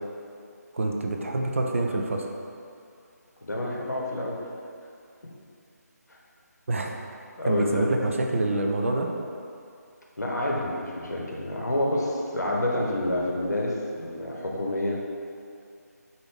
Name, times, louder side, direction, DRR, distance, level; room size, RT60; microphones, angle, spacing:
voice 1, 0.7-2.3 6.7-6.9 7.4-9.1, right 2 dB, 50° right, 1 dB, 0.4 m, -26 dB
voice 2, 3.4-4.4 6.1-6.2 7.4-7.8 10.2-15.0, left 1 dB, 75° left, -2 dB, 0.9 m, -28 dB
5.1 x 2.6 x 3.6 m, 2.4 s
figure-of-eight pair, 155°, 9 cm